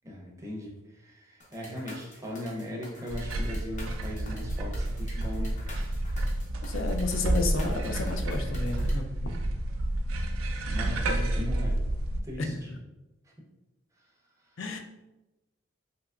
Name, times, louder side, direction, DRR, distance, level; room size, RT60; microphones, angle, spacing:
voice 1, 0.0-5.6 10.7-11.8 12.2-12.7 14.5-14.6, left 1 dB, 15° right, -2 dB, 0.5 m, -38 dB
sound 1, 1.4-8.9, left 2 dB, 35° left, 0.7 m, -48 dB
sound 2, 3.1-12.2, right 1 dB, 85° right, 0.4 m, -30 dB
voice 2, 6.6-9.3 12.4-12.8 14.6-14.8, left 3 dB, 70° left, 4 dB, 0.4 m, -32 dB
3.4 x 2.9 x 2.3 m, 1.0 s
head